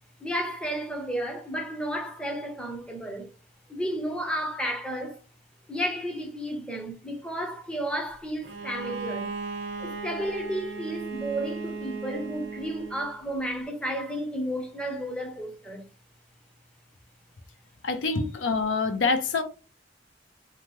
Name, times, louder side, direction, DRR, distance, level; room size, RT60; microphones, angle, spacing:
voice 1, 0.2-3.3 3.7-5.2 5.7-9.3 9.8-15.9 18.1-18.5, equal, 5° left, 0.6 m, -32 dB
Bowed string instrument, 8.4-13.1, right 4 dB, 75° right, 0.6 m, -36 dB
voice 2, 17.8-19.4, left 4 dB, 80° left, 0.6 m, -26 dB
2.8 x 2.2 x 3.1 m
head